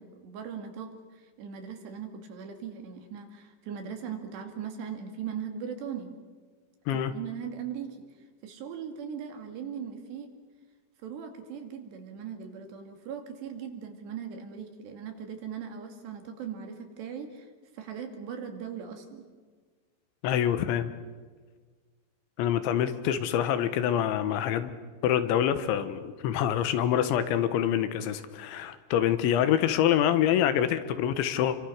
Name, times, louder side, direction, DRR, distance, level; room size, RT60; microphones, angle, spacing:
voice 1, 0.0-6.1 6.9-8.0 8.4-10.3 11.0-19.2, right 7 dB, 70° right, 5 dB, 4.4 m, -39 dB
voice 2, 20.2-20.9 22.4-24.7 25.0-31.6, left 10 dB, 85° left, 11 dB, 3.6 m, -26 dB
29.0 x 24.0 x 6.5 m, 1.5 s
omnidirectional pair, 5.3 m